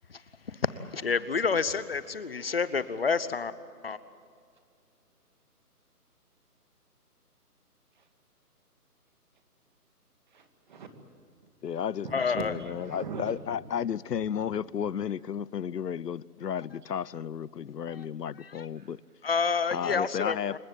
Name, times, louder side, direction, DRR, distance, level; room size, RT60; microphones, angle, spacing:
voice 1, 0.5-3.5 3.8-4.0 12.1-12.5 17.9-18.1 18.4-18.7 19.2-20.6, left 5 dB, 40° left, 0.9 m, -29 dB
voice 2, 10.3-11.5 12.0-13.6 14.1-14.2 18.8-18.9, right 4 dB, 30° right, 2.1 m, -42 dB
voice 3, 11.6-12.1 12.3-19.0 19.7-20.6, left 8 dB, 85° left, 0.8 m, -33 dB
27.5 x 15.5 x 9.0 m
hypercardioid pair, 165°, 47 cm